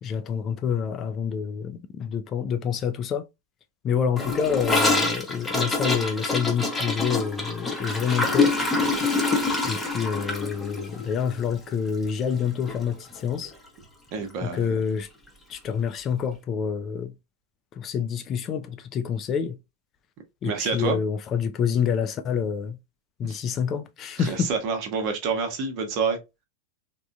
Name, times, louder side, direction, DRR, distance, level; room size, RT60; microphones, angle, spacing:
voice 1, 0.0-3.3 3.8-8.6 9.6-13.5 14.4-15.1 15.5-17.1 17.7-19.6 20.4-22.8 23.2-24.5, left 7 dB, 30° left, 0.3 m, -27 dB
Gurgling / Toilet flush, 4.2-12.4 12.7-12.8 13.1-13.5 13.8-13.9 14.2-14.3 15.3-15.4, left 3 dB, 10° left, 0.8 m, -26 dB
voice 2, 14.1-14.8 20.4-21.0 23.2-23.4 24.2-26.2, right 5 dB, 40° right, 0.8 m, -28 dB
3.5 x 2.2 x 2.4 m
figure-of-eight pair, 90°, 0 cm